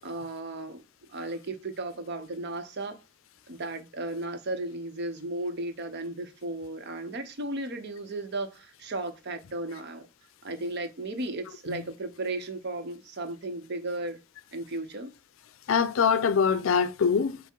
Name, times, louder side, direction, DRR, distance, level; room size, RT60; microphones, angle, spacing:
voice 1, 0.0-0.8 1.1-3.0 3.5-10.1 10.4-14.2 14.5-15.1, right 2 dB, 55° right, 0.7 m, -35 dB
voice 2, 15.7-17.5, left 6 dB, 80° left, 0.4 m, -24 dB
5.8 x 2.0 x 4.5 m
head